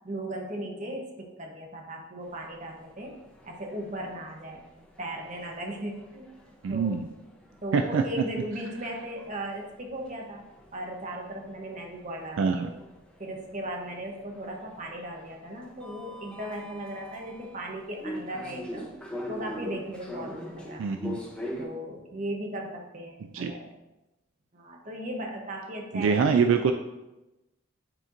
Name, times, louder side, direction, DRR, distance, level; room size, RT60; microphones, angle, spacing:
voice 1, 0.0-3.1 3.4-4.7 5.0-6.3 6.7-7.0 7.6-10.4 10.7-12.8 13.2-18.9 19.3-21.0 21.6-23.7 24.5-26.4, right 1 dB, 40° right, 1 dB, 1.0 m, -37 dB
sound 1, 2.2-21.7, equal, 5° left, 0.7 m, -44 dB
voice 2, 6.6-7.1 7.7-8.0 12.4-12.7 20.8-21.2 23.3-23.5 25.9-26.7, right 5 dB, 70° right, 6 dB, 0.3 m, -24 dB
8.8 x 4.3 x 2.6 m, 1.0 s
head